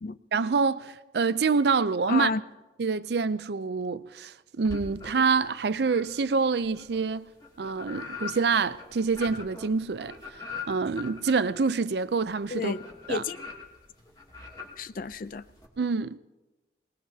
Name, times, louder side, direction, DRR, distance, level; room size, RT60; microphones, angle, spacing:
voice 1, 0.3-2.3 2.8-7.3 7.6-10.2 10.7-12.7 13.1-13.2 15.8-16.2, right 4 dB, 65° right, 0.5 m, -26 dB
voice 2, 2.1-2.4 12.5-12.8 13.1-13.4 14.8-15.4, left 4 dB, 50° left, 0.4 m, -31 dB
sound 1, 4.6-5.5 5.8-15.7, left 5 dB, 20° left, 2.4 m, -42 dB
24.5 x 19.5 x 2.8 m
head